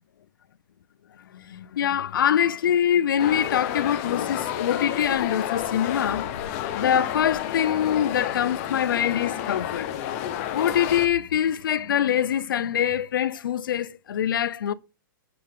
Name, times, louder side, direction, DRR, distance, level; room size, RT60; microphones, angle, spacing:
voice 1, 1.3-6.3 6.7-9.9 10.5-14.7, left 9 dB, 80° left, 0.6 m, -24 dB
sound 1, 3.2-11.1, left 11 dB, 40° left, 1.0 m, -30 dB
7.7 x 4.3 x 3.6 m
hypercardioid pair, 145°, 11 cm